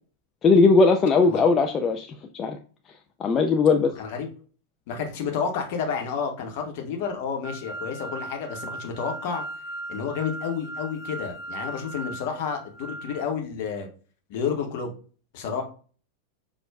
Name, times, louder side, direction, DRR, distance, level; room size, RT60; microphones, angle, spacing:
voice 1, 0.4-2.1 2.3-2.6 3.2-4.0, left 4 dB, 25° left, 4 dB, 0.3 m, -19 dB
voice 2, 4.9-9.4 9.9-13.9 14.3-14.9 15.3-15.6, left 6 dB, 50° left, 3 dB, 0.9 m, -30 dB
sound 1, 7.4-13.2, right 2 dB, 5° right, 1.3 m, -38 dB
5.9 x 2.3 x 2.2 m, 0.39 s
figure-of-eight pair, 90°, 0 cm